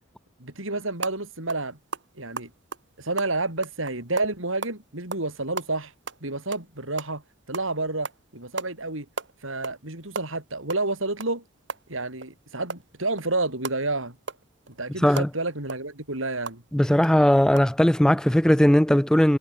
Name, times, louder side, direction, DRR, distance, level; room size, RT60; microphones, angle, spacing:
voice 1, 0.4-1.8 2.2-2.5 3.0-5.9 6.2-7.2 7.5-9.1 9.4-11.4 11.9-14.2 14.8-16.6, right 2 dB, 70° right, 5.7 m, -30 dB
sound 1, 1.0-1.2 1.5-1.6 1.9-4.8 5.1-5.3 5.6-7.2 7.5-7.7 8.0-8.2 8.6-8.7 9.0-9.8 10.1-12.3 12.7-16.6 17.0-17.1 17.5-17.6, right 4 dB, 55° right, 1.9 m, -36 dB
voice 2, 16.7-19.4, equal, 5° left, 0.3 m, -18 dB
head